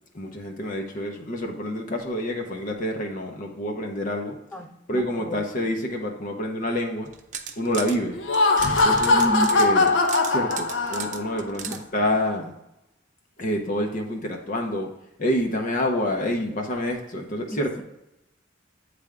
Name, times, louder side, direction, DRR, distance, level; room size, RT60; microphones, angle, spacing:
voice 1, 0.1-4.3 4.9-7.1 7.6-8.2 8.8-9.9 10.3-12.5 13.4-14.9 15.2-17.7, equal, 45° left, 2 dB, 0.7 m, -27 dB
voice 2, 4.5-5.4 9.1-9.6 11.6-12.1 17.5-17.8, equal, 5° left, 4 dB, 0.6 m, -31 dB
sound 1, 7.1-8.0 8.3-11.8, right 7 dB, 40° right, 0.5 m, -35 dB
Laughter, 8.1-11.4, left 3 dB, 75° left, 0.8 m, -21 dB
8.8 x 3.4 x 3.6 m, 0.89 s
head